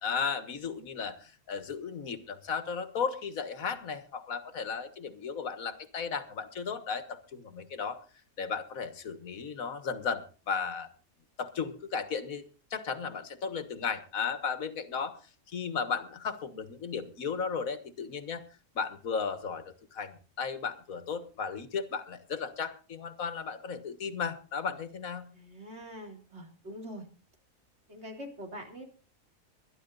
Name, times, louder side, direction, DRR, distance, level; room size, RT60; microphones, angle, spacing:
voice 1, 0.0-8.0 8.4-10.9 11.4-12.4 12.7-15.2 15.5-18.4 18.8-25.3, left 6 dB, 75° left, 10 dB, 2.0 m, -35 dB
voice 2, 25.3-27.1 27.9-28.8, equal, 50° right, 3 dB, 4.0 m, -44 dB
21.5 x 11.5 x 4.0 m, 0.35 s
omnidirectional pair, 1.5 m